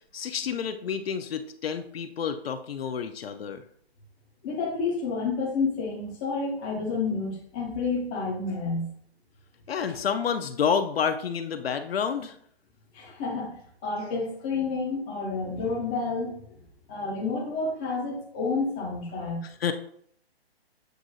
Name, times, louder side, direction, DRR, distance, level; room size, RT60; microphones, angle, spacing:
voice 1, 0.1-3.6 9.7-12.4 19.4-19.7, left 7 dB, 70° left, 8 dB, 0.5 m, -29 dB
voice 2, 4.4-8.9 12.9-13.6 13.8-16.3 16.9-19.4, left 4 dB, 10° left, -3 dB, 0.4 m, -29 dB
7.8 x 2.7 x 2.6 m, 0.63 s
hypercardioid pair, 145°, 32 cm